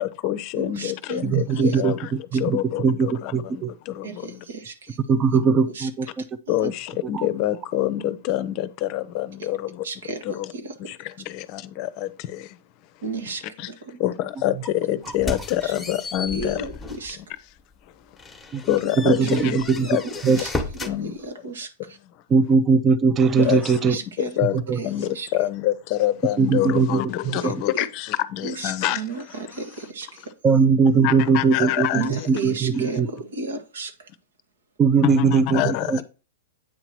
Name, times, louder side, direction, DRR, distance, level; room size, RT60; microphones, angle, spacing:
voice 1, 0.0-4.4 6.5-9.8 10.2-10.5 10.8-12.6 12.8-12.9 13.6-13.7 14.0-16.7 17.2-17.3 17.9-20.2 20.9-21.1 22.1-22.2 23.4-23.8 24.2-24.5 24.8-29.0 29.3-29.6 31.0-32.3 35.0-36.0, left 13 dB, 45° left, 0.6 m, -27 dB
voice 2, 0.6-1.3 1.6-1.8 4.0-5.0 5.7-5.9 6.6-6.7 9.4-9.5 9.8-10.7 13.0-14.0 15.6-15.7 16.2-17.2 19.2-19.3 19.7-20.0 20.2-22.0 23.4-24.4 24.7-24.9 25.1-25.3 27.4-27.5 28.4-30.3 31.9-34.1, right 3 dB, 80° right, 1.4 m, -33 dB
voice 3, 1.2-3.7 5.1-6.1 7.1-7.3 18.5-18.6 19.0-19.9 20.2-20.4 22.3-24.0 24.5-24.8 26.4-27.5 30.4-33.1 34.8-36.0, right 5 dB, 25° right, 0.5 m, -20 dB
sound 1, 15.1-17.1 17.6-17.7 18.2-21.0, left 3 dB, 5° left, 1.1 m, -34 dB
8.7 x 2.9 x 6.0 m
hypercardioid pair, 120°, 0 cm